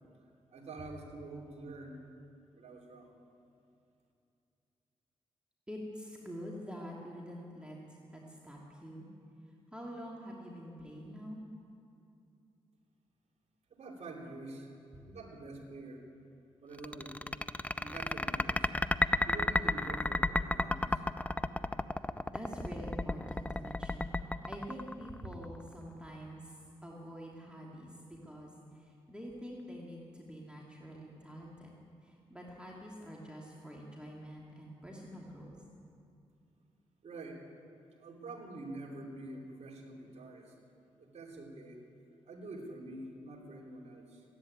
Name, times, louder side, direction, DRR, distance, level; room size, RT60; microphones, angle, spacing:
voice 1, 0.5-2.0 2.5-3.1 13.7-14.7 15.0-16.0 16.6-17.2 17.8-18.7 19.2-21.0 37.0-37.4 37.9-40.5 41.0-41.8 42.3-44.2, right 2 dB, 65° right, 0 dB, 3.1 m, -46 dB
voice 2, 5.7-9.1 9.7-11.4 14.9-15.0 22.3-35.6, equal, 10° right, -3 dB, 2.7 m, -46 dB
sound 1, 16.8-25.5, left 2 dB, 10° left, 0.6 m, -32 dB
14.0 x 10.5 x 9.3 m, 2.6 s
supercardioid pair, 50°, 12 cm